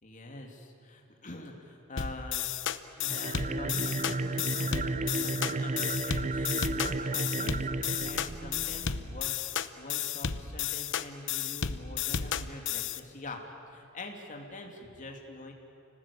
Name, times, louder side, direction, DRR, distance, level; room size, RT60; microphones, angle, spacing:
voice 1, 0.0-2.5 3.0-13.4 13.7-15.5, left 2 dB, 35° left, 2 dB, 3.1 m, -45 dB
sound 1, 2.0-13.0, left 8 dB, 60° left, 0.9 m, -33 dB
sound 2, 3.0-9.3, right 3 dB, 35° right, 0.5 m, -33 dB
29.5 x 19.0 x 8.6 m, 2.6 s
head